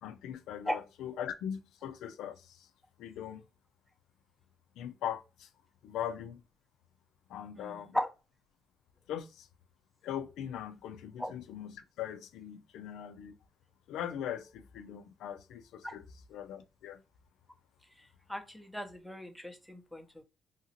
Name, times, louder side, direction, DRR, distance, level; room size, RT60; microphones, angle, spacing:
voice 1, 0.0-2.7 3.0-3.4 4.8-5.5 5.8-6.4 7.3-8.0 9.1-9.5 10.0-13.4 13.9-16.0 16.3-17.0, left 9 dB, 85° left, 0.3 m, -40 dB
voice 2, 7.5-8.1 11.2-11.3 15.8-15.9 18.0-20.2, equal, ahead, 0.7 m, -37 dB
2.8 x 2.6 x 2.8 m
cardioid pair, 90°, 0 cm